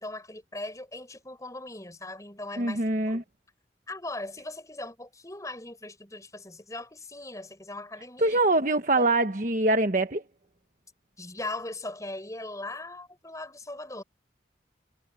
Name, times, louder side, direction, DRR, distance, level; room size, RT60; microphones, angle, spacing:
voice 1, 0.0-3.2 3.9-8.4 9.0-9.1 11.2-14.0, left 2 dB, 20° left, 7.9 m, -39 dB
voice 2, 2.6-3.2 8.2-10.2, right 2 dB, 45° right, 1.2 m, -24 dB
head